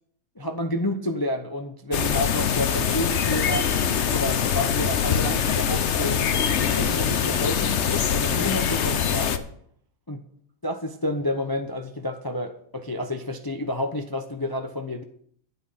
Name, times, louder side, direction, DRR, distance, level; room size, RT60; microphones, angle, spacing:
voice 1, 0.4-3.7 4.1-6.2 6.6-9.4 10.1-10.2 10.6-15.0, left 1 dB, 25° left, 6 dB, 0.5 m, -30 dB
sound 1, 1.9-9.4, left 7 dB, 55° left, 0.9 m, -23 dB
10.5 x 9.2 x 5.7 m, 0.63 s
omnidirectional pair, 1.8 m